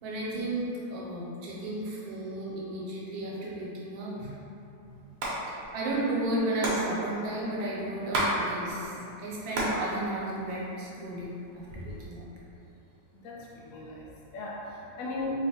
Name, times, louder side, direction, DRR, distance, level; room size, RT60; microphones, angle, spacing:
voice 1, 0.0-4.3 5.5-12.2, right 1 dB, 85° right, -5 dB, 1.5 m, -33 dB
Hands, 5.0-5.4 5.6-5.7 5.9-8.4 8.7-9.8 10.2-10.9 11.5-12.1, right 1 dB, 65° right, 1.2 m, -31 dB
voice 2, 13.1-15.3, left 2 dB, 65° left, -4 dB, 0.9 m, -38 dB
4.1 x 3.0 x 2.8 m, 2.8 s
omnidirectional pair, 2.1 m